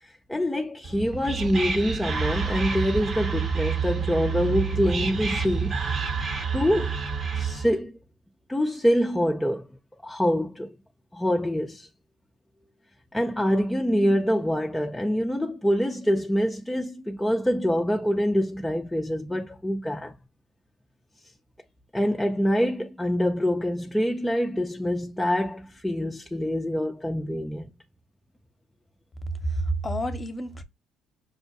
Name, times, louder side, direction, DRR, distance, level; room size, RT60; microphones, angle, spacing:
voice 1, 0.0-5.8 6.5-7.0 7.3-8.0 8.5-9.7 10.0-10.7 11.1-11.9 13.1-20.1 21.9-27.7, equal, 5° left, 0.4 m, -25 dB
Whispering, 0.8-7.8, right 5 dB, 45° right, 0.8 m, -28 dB
voice 2, 29.4-30.6, right 1 dB, 25° left, 0.7 m, -28 dB
5.3 x 2.1 x 2.7 m
supercardioid pair, 70°, 0 cm